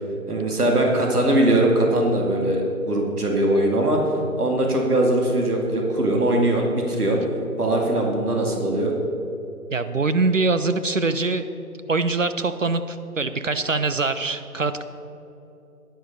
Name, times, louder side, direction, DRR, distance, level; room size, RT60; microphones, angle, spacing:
voice 1, 0.3-4.0 4.4-7.2 7.6-8.9, right 1 dB, 75° right, 0 dB, 2.4 m, -21 dB
voice 2, 9.7-11.5 11.9-14.8, right 3 dB, 55° right, 11 dB, 0.6 m, -23 dB
10.0 x 9.9 x 5.4 m, 2.9 s
figure-of-eight pair, 165°, 46 cm